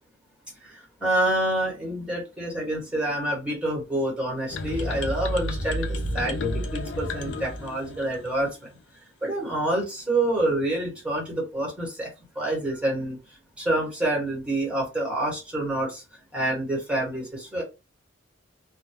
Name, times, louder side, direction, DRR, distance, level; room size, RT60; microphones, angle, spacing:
voice 1, 0.6-8.7 9.2-16.0 16.3-17.6, right 1 dB, 5° right, -3 dB, 1.1 m, -27 dB
sound 1, 4.5-8.4, left 1 dB, 65° left, 0.5 m, -31 dB
2.2 x 2.1 x 3.0 m, 0.27 s
head